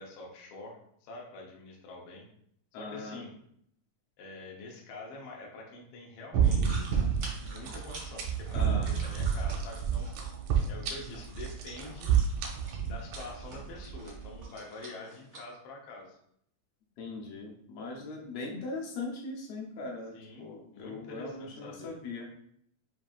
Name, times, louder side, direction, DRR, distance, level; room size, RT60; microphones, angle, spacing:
voice 1, 0.0-2.3 2.8-3.3 4.2-6.9 7.4-10.1 10.7-12.2 12.8-16.2 20.1-21.9, left 3 dB, 90° left, -1 dB, 1.1 m, -46 dB
voice 2, 2.7-3.2 8.5-8.9 17.0-22.3, left 3 dB, 70° left, 0 dB, 1.6 m, -40 dB
sound 1, 6.3-14.4, right 7 dB, 85° right, 2.2 m, -30 dB
sound 2, 6.4-15.4, right 2 dB, 60° right, 0.9 m, -49 dB
7.3 x 2.7 x 2.4 m, 0.69 s
omnidirectional pair, 3.6 m